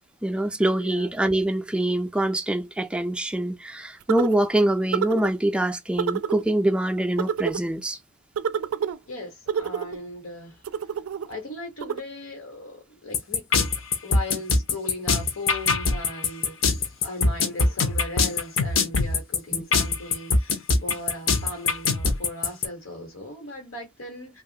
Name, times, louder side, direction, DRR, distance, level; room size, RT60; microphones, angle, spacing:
voice 1, 0.2-8.0 19.5-19.6, right 1 dB, 5° right, 0.3 m, -24 dB
voice 2, 0.8-1.1 9.1-10.6 11.3-13.7 14.0-16.7 17.0-24.4, left 1 dB, 85° left, 1.2 m, -38 dB
sound 1, 4.1-4.5 4.9-5.3 6.0-6.4 7.2-7.6 8.4-9.0 9.5-10.0 10.6-11.3 11.8-12.0, right 7 dB, 85° right, 0.3 m, -28 dB
sound 2, 13.1-22.7, left 4 dB, 70° left, 0.7 m, -22 dB
2.9 x 2.3 x 2.7 m
head